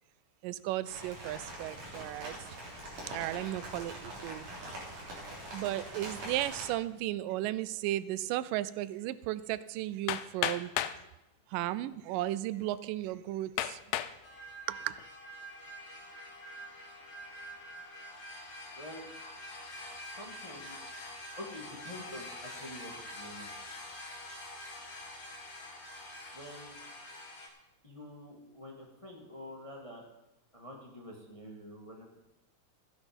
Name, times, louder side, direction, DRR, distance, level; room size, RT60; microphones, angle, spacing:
voice 1, 0.4-2.4 3.1-4.5 5.5-10.7 11.5-13.8 14.7-14.9, right 15 dB, 90° right, 16 dB, 2.2 m, -35 dB
sound 1, 0.9-6.7, right 1 dB, 55° right, 4.5 m, -43 dB
Hammer, 10.1-11.0 11.9-12.0 12.6-12.7 13.6-14.2 14.8-15.2, left 12 dB, 90° left, 1.5 m, -33 dB
sound 2, 14.2-27.5, left 1 dB, 65° left, 3.4 m, -46 dB
voice 2, 18.7-19.1 20.1-20.8 21.4-23.5 26.3-26.8 27.8-30.0 30.5-32.2, left 1 dB, 15° left, -1 dB, 1.4 m, -47 dB
14.0 x 10.0 x 5.3 m, 0.95 s
omnidirectional pair, 3.7 m